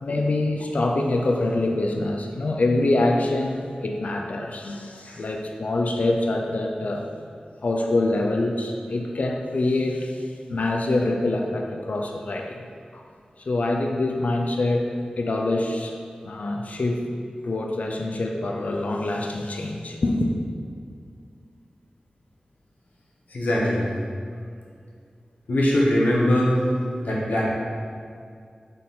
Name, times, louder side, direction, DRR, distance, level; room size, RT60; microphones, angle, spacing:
voice 1, 0.0-7.1 7.6-12.6 12.9-13.0 13.4-16.0 16.2-17.0 17.4-20.3, left 2 dB, 60° left, 2 dB, 0.5 m, -25 dB
voice 2, 23.3-23.9 25.5-26.6 27.0-27.4, left 1 dB, 85° left, -4 dB, 1.0 m, -21 dB
6.5 x 4.1 x 3.7 m, 2.2 s
wide cardioid pair, 75°, 3 cm